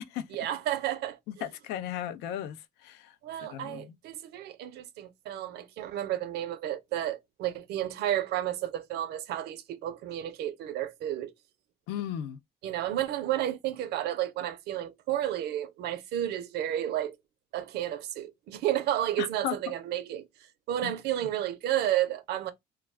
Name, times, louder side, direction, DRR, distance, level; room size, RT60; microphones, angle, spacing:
voice 1, 0.3-1.4 3.2-11.3 12.6-17.2 17.5-20.3 20.7-22.5, right 12 dB, 75° right, 0.5 m, -32 dB
voice 2, 1.3-2.6 2.8-3.1 3.4-3.9 11.9-12.4 19.2-19.6 20.8-20.9, left 11 dB, 90° left, 0.4 m, -35 dB
2.3 x 2.2 x 3.1 m
cardioid pair, 110°, 17 cm